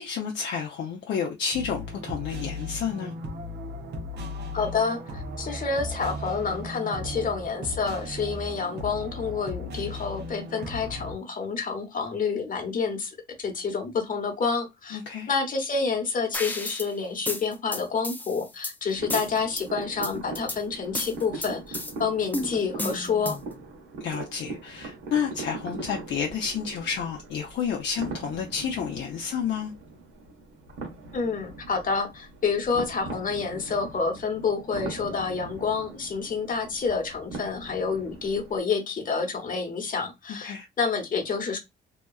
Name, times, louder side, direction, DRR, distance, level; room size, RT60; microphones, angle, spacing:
voice 1, 0.0-3.1 14.9-15.3 24.0-29.7 40.4-40.7, left 7 dB, 65° left, 0.6 m, -30 dB
sound 1, 1.5-11.1, left 1 dB, 55° right, 0.8 m, -36 dB
voice 2, 4.5-13.1 13.4-15.0 15.3-23.4 31.1-41.6, left 5 dB, 45° left, 1.0 m, -28 dB
sound 2, 16.3-16.9 17.3-18.7 19.1-19.6 20.0-20.6 20.9-21.9 22.3-23.5, left 2 dB, 10° left, 0.4 m, -32 dB
sound 3, 18.9-38.6, right 3 dB, 75° right, 1.1 m, -41 dB
2.8 x 2.3 x 2.3 m
cardioid pair, 90°, 20 cm